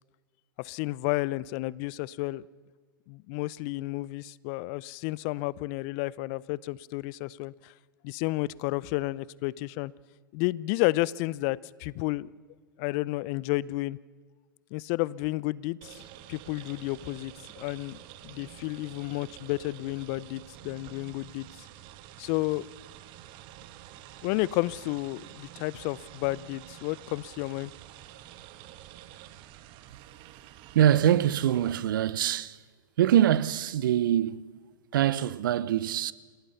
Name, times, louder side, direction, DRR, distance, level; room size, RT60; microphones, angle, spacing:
voice 1, 0.6-2.4 3.1-7.7 8.0-9.9 10.3-12.3 12.8-14.0 14.7-16.0 16.3-21.5 22.2-22.7 24.2-27.7, left 20 dB, 45° left, 0.6 m, -31 dB
sound 1, 15.8-31.7, right 13 dB, 45° right, 1.5 m, -49 dB
voice 2, 30.7-32.6 33.0-34.5 34.9-36.1, right 11 dB, 70° right, 0.9 m, -24 dB
29.5 x 17.5 x 5.7 m
hypercardioid pair, 105°, 12 cm